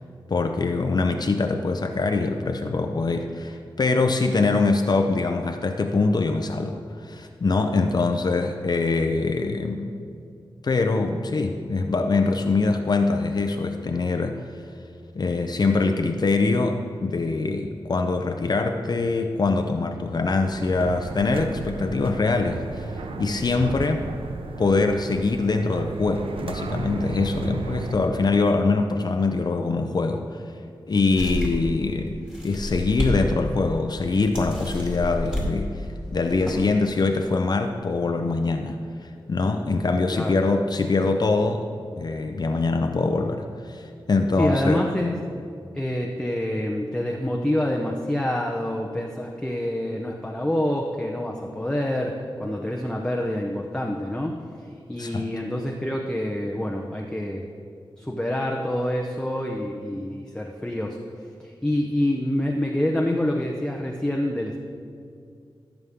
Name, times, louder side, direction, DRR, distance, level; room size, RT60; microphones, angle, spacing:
voice 1, 0.3-10.0 10.6-14.4 15.2-22.9 23.2-24.1 24.6-30.4 30.9-35.7 36.1-41.6 42.0-44.8 55.0-55.3, left 3 dB, 50° left, 4 dB, 0.6 m, -23 dB
sound 1, 20.1-28.0, right 3 dB, 80° right, 0.7 m, -34 dB
sound 2, 31.2-31.7 32.3-33.2 33.6-33.7 34.3-35.5 36.2-36.7, left 1 dB, 5° right, 2.3 m, -29 dB
voice 2, 44.4-45.2 45.7-54.4 54.9-57.5 57.9-61.0 61.4-64.6, left 1 dB, 10° left, 0 dB, 0.7 m, -27 dB
14.5 x 7.1 x 3.6 m, 2.3 s
wide cardioid pair, 95°, 9 cm